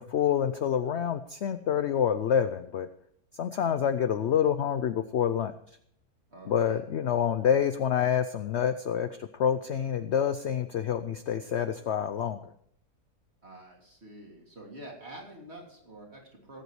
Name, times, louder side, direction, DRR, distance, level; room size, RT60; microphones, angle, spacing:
voice 1, 0.0-2.9 3.3-5.5 6.5-12.5, left 8 dB, 60° left, 10 dB, 0.7 m, -27 dB
voice 2, 6.3-6.8 13.4-16.6, right 1 dB, 40° right, -1 dB, 3.2 m, -47 dB
18.5 x 8.1 x 4.8 m, 0.67 s
omnidirectional pair, 1.7 m